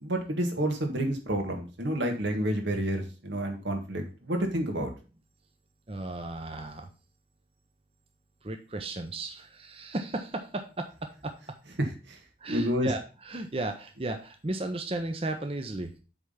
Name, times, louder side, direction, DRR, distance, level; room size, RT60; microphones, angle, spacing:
voice 1, 0.0-4.9 11.8-12.2 12.5-12.9, right 1 dB, 85° right, 3 dB, 1.8 m, -29 dB
voice 2, 5.9-6.9 8.4-10.9 11.2-11.3 12.4-15.9, right 2 dB, 30° right, 5 dB, 0.7 m, -34 dB
8.0 x 3.5 x 5.5 m, 0.34 s
head